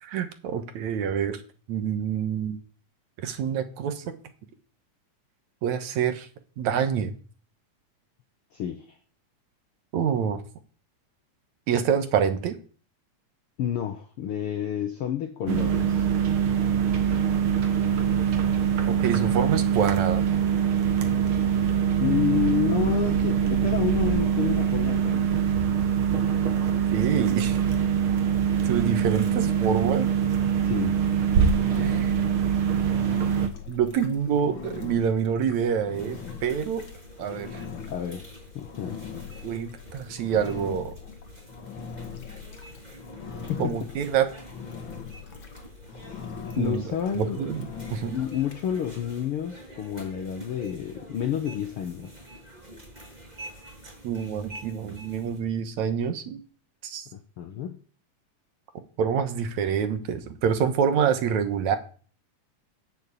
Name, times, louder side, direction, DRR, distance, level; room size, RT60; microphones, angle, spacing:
voice 1, 0.0-1.4 1.7-2.6 3.2-4.2 5.6-6.3 6.6-7.1 9.9-10.4 11.7-12.6 19.0-20.2 26.9-27.6 28.6-30.1 31.8-32.1 33.7-36.8 37.2-37.5 39.4-40.9 43.6-44.3 46.6-46.8 47.2-47.6 47.9-48.2 54.0-56.4 56.8-57.1 59.0-61.8, right 7 dB, 70° right, 2.5 m, -26 dB
voice 2, 8.5-9.0 13.6-16.0 22.0-25.4 30.6-31.0 37.9-39.0 43.3-43.9 46.6-47.4 48.1-52.1 57.1-57.8, left 9 dB, 70° left, 1.4 m, -29 dB
sound 1, 15.5-33.5, right 8 dB, 50° right, 1.9 m, -23 dB
Engine, 31.3-48.6, left 6 dB, 45° left, 1.9 m, -41 dB
sound 2, 35.9-55.4, right 1 dB, 10° right, 6.8 m, -47 dB
10.5 x 7.4 x 8.3 m
omnidirectional pair, 3.5 m